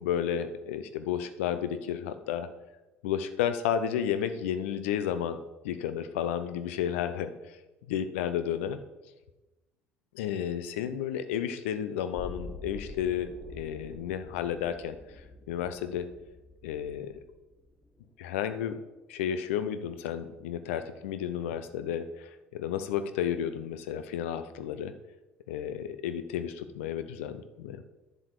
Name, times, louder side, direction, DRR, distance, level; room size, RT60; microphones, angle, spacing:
voice 1, 0.0-2.5 3.0-5.4 5.6-7.6 7.9-8.8 10.1-15.0 15.5-16.1 16.6-17.2 18.2-18.8 19.1-24.9 25.5-27.8, left 9 dB, 65° left, 11 dB, 0.7 m, -32 dB
sound 1, 12.1-18.1 18.4-18.5, left 2 dB, 15° left, 1.6 m, -47 dB
10.5 x 7.4 x 4.7 m, 1.1 s
figure-of-eight pair, 55°, 7 cm